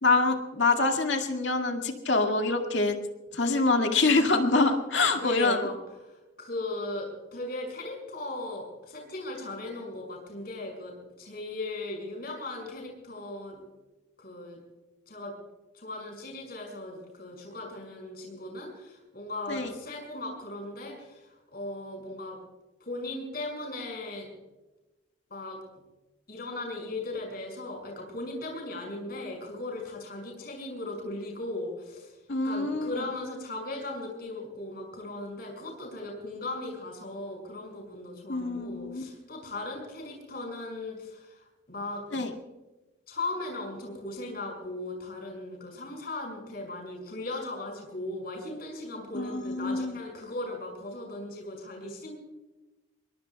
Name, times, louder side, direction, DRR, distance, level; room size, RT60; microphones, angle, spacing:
voice 1, 0.0-3.0 3.3-5.7 19.5-19.7 32.3-33.0 38.3-39.0 42.1-42.3 49.1-50.0, left 3 dB, 65° left, 4 dB, 2.0 m, -25 dB
voice 2, 5.2-5.7 6.1-13.6 14.2-14.6 15.1-15.3 15.7-22.4 22.8-24.3 25.3-25.6 26.3-32.1 32.4-42.0 43.1-52.1, left 2 dB, 50° left, 1 dB, 5.9 m, -38 dB
23.0 x 22.0 x 2.3 m, 1.1 s
head